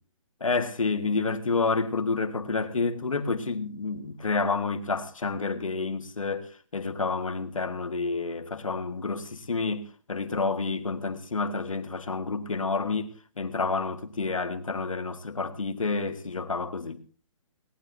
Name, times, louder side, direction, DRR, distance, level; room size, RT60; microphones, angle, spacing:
voice 1, 0.4-13.1 13.4-17.0, left 4 dB, 90° left, 1.8 m, -29 dB
19.0 x 18.5 x 2.8 m
hypercardioid pair, 145°, 17 cm